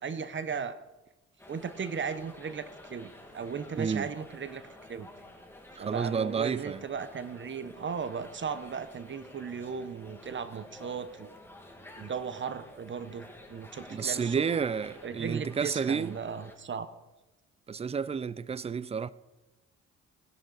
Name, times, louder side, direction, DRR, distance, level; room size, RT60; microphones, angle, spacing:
voice 1, 0.0-0.8 1.5-4.6 4.9-5.1 5.8-11.4 12.0-14.4 15.0-16.9, right 6 dB, 40° right, 0.9 m, -36 dB
sound 1, 1.4-16.6, left 1 dB, 10° left, 2.1 m, -51 dB
voice 2, 3.8-4.1 5.8-6.8 13.9-16.2 17.7-19.1, right 6 dB, 20° right, 0.4 m, -30 dB
15.5 x 11.0 x 4.0 m
cardioid pair, 90°, 30 cm